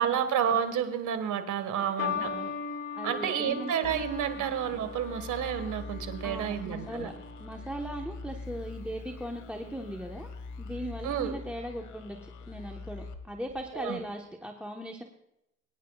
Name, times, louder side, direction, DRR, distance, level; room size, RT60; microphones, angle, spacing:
voice 1, 0.0-2.3 3.0-7.1 11.0-11.4 13.7-14.0, right 9 dB, 80° right, 9 dB, 1.7 m, -30 dB
voice 2, 1.7-2.5 3.0-3.7 4.4-4.5 6.2-7.1 7.4-10.3 10.6-15.0, equal, 5° right, 1 dB, 1.1 m, -39 dB
sound 1, 2.0-8.5 9.4-9.8, left 6 dB, 50° left, 1.9 m, -39 dB
sound 2, 3.8-14.1, left 3 dB, 75° left, 1.5 m, -44 dB
23.5 x 10.0 x 2.4 m, 0.85 s
cardioid pair, 90°, 30 cm